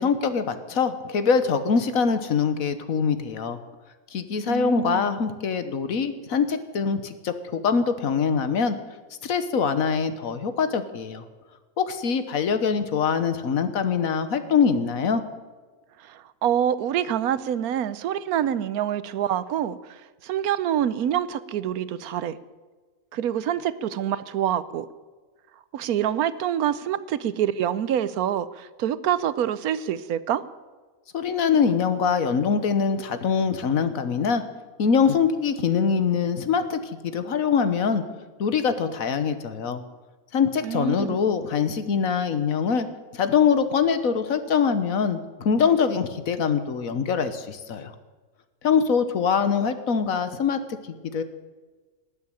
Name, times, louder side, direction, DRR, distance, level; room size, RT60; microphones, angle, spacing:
voice 1, 0.0-3.6 4.1-8.8 9.2-11.2 11.8-15.2 31.1-34.4 34.8-38.0 38.4-39.8 40.3-42.9 43.1-47.9 48.6-50.6 51.1-51.2, left 6 dB, 70° left, 10 dB, 1.5 m, -23 dB
voice 2, 4.5-5.1 16.0-22.4 23.1-24.9 25.7-30.4 40.6-41.2, right 10 dB, 85° right, 16 dB, 1.2 m, -26 dB
18.5 x 7.6 x 9.1 m, 1.3 s
omnidirectional pair, 1.5 m